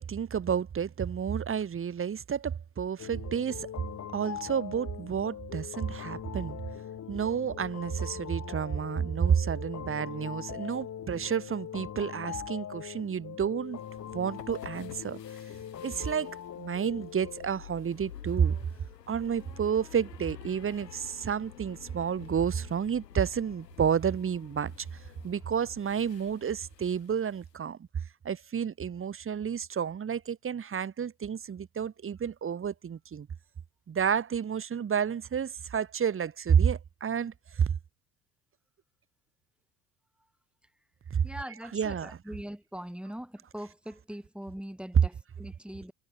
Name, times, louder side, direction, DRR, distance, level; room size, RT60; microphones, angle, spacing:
voice 1, 0.0-3.7 4.1-6.6 7.1-13.8 14.1-15.2 15.8-18.6 19.1-24.7 25.2-27.8 28.2-33.3 33.9-37.8 41.1-41.3 41.7-42.2, right 7 dB, 25° right, 2.0 m, -30 dB
sound 1, 3.0-17.5, left 9 dB, 35° left, 2.8 m, -41 dB
sound 2, 13.7-27.5, left 9 dB, 80° left, 6.5 m, -50 dB
voice 2, 41.2-45.9, equal, ahead, 2.6 m, -41 dB
figure-of-eight pair, 65°, 49 cm